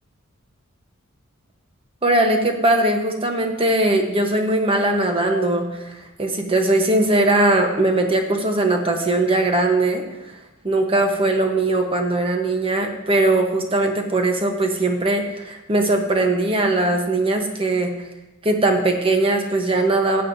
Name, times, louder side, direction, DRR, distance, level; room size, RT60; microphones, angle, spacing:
voice 1, 2.0-10.0 10.6-17.9 18.4-20.2, right 2 dB, 25° right, 4 dB, 1.0 m, -20 dB
14.5 x 8.7 x 2.7 m, 1.0 s
head